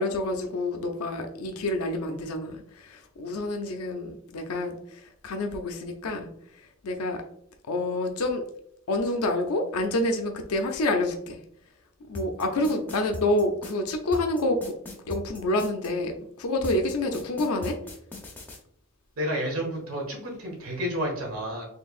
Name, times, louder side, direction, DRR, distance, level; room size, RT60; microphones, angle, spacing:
voice 1, 0.0-6.3 6.8-7.2 7.7-8.4 8.9-11.4 12.1-14.6 15.1-17.8, left 2 dB, 90° left, 4 dB, 0.5 m, -28 dB
sound 1, 12.1-15.9 16.6-18.6, left 1 dB, 10° left, 0.6 m, -38 dB
voice 2, 19.2-21.6, equal, 80° right, -1 dB, 1.4 m, -30 dB
4.4 x 3.3 x 2.4 m, 0.69 s
head